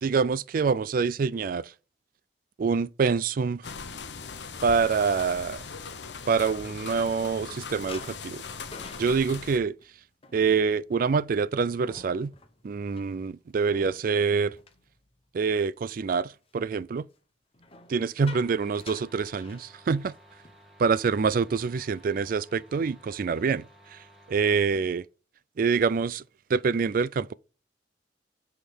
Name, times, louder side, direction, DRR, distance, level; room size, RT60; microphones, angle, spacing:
voice 1, 0.0-1.7 2.6-3.6 4.6-5.6 6.3-8.4 9.0-9.8 10.3-12.3 12.6-14.6 15.3-17.1 17.9-20.1 20.8-23.6 23.9-24.0 24.3-25.1 25.6-26.2 26.5-27.3, right 5 dB, 50° right, 0.4 m, -26 dB
sound 1, 3.6-9.6, left 5 dB, 75° left, 0.9 m, -40 dB
sound 2, 7.9-15.7 16.1-16.4 17.5-20.1 20.4-20.6 21.0-21.2 21.7-22.4, left 3 dB, 30° left, 0.9 m, -50 dB
sound 3, 18.4-24.7, right 1 dB, ahead, 2.1 m, -55 dB
9.8 x 3.6 x 6.1 m
head